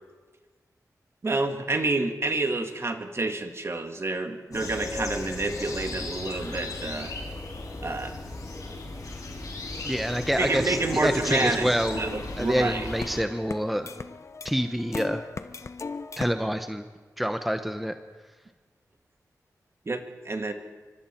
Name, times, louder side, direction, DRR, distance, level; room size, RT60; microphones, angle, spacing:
voice 1, 1.2-7.1 7.8-8.2 10.4-11.7 12.0-12.9 19.9-20.5, right 2 dB, 45° right, 6 dB, 2.0 m, -28 dB
sound 1, 4.5-13.2, left 2 dB, 70° left, 6.4 m, -36 dB
voice 2, 9.8-12.0 12.4-13.9 14.4-15.2 16.2-16.8 17.2-17.9, equal, ahead, 7 dB, 1.0 m, -27 dB
sound 2, 10.8-16.4, left 4 dB, 50° left, 0.9 m, -39 dB
26.0 x 25.0 x 4.6 m, 1.4 s
wide cardioid pair, 85°, 6 cm